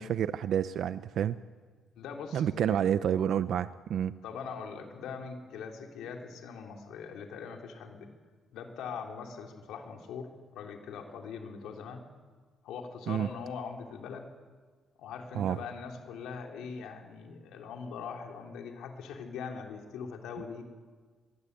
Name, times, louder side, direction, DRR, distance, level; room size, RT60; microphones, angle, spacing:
voice 1, 0.0-1.4 2.3-4.2 13.1-13.3 15.3-15.6, right 9 dB, 70° right, 13 dB, 0.6 m, -29 dB
voice 2, 2.0-2.8 4.2-8.1 8.5-12.0 12.6-14.3 15.0-20.6, left 6 dB, 85° left, 2 dB, 3.4 m, -41 dB
22.5 x 19.0 x 8.3 m, 1.5 s
cardioid pair, 90°, 0 cm